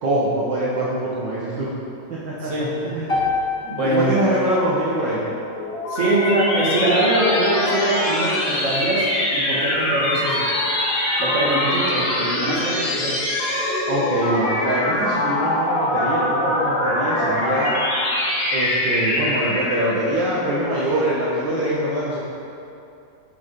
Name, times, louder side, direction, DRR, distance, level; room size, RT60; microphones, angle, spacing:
voice 1, 0.0-1.7 2.1-3.3 3.8-5.3 13.9-17.7 18.5-22.2, right 1 dB, 55° right, -7 dB, 1.3 m, -24 dB
voice 2, 2.4-2.9 3.6-4.1 5.9-10.5 11.2-13.2, right 1 dB, 30° right, -6 dB, 1.8 m, -23 dB
sound 1, 3.1-7.3, left 3 dB, 30° left, 1.1 m, -30 dB
sound 2, 5.3-20.0, left 1 dB, 65° left, 2.7 m, -23 dB
9.0 x 7.0 x 5.2 m, 2.7 s
omnidirectional pair, 3.5 m